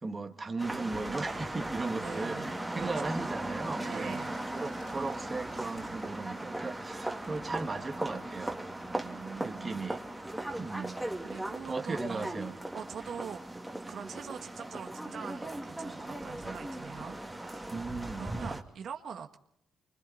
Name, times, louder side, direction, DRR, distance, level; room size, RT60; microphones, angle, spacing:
voice 1, 0.0-2.4 2.7-4.2 4.5-8.6 9.4-10.0 10.6-10.9 11.7-12.5 17.7-18.5, right 3 dB, 25° right, 1.7 m, -37 dB
sound 1, 0.6-18.6, right 1 dB, 5° right, 2.1 m, -38 dB
Bird, 1.4-9.0, left 4 dB, 60° left, 5.0 m, -60 dB
voice 2, 2.0-2.9 3.8-4.4 8.7-9.9 11.2-12.4 12.7-13.4 13.9-17.7 18.1-19.4, right 7 dB, 60° right, 1.5 m, -44 dB
27.0 x 24.5 x 4.1 m
cardioid pair, 90°, 0 cm